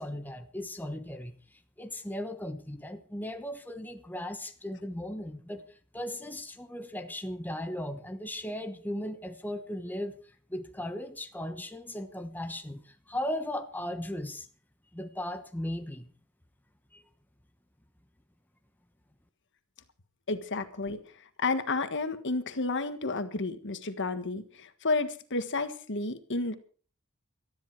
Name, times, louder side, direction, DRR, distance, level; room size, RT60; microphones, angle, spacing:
voice 1, 0.0-14.5 14.9-16.1 16.9-17.1, left 1 dB, 10° left, 7 dB, 1.0 m, -37 dB
voice 2, 20.3-21.0 21.4-26.5, left 3 dB, 60° left, 10 dB, 1.5 m, -31 dB
18.5 x 13.0 x 4.7 m, 0.41 s
head